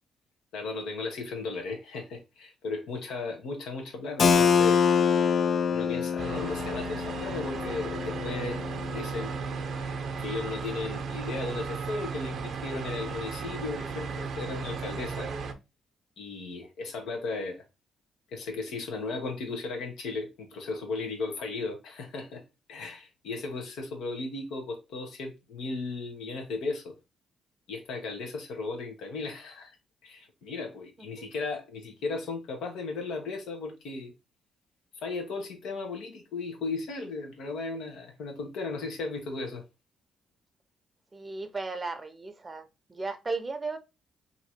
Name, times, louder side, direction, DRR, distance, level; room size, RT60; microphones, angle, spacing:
voice 1, 0.5-4.8 5.7-8.6 8.9-9.3 10.2-15.3 16.2-17.6 18.3-22.4 22.7-27.0 27.7-29.7 30.0-34.1 35.0-39.6, left 3 dB, 80° left, 1.0 m, -36 dB
Keyboard (musical), 4.2-9.7, left 6 dB, 50° left, 0.3 m, -26 dB
sound 1, 6.2-15.5, right 5 dB, 60° right, 0.6 m, -35 dB
voice 2, 41.1-43.8, right 3 dB, 25° right, 0.6 m, -35 dB
2.9 x 2.6 x 4.3 m
cardioid pair, 90°, 0 cm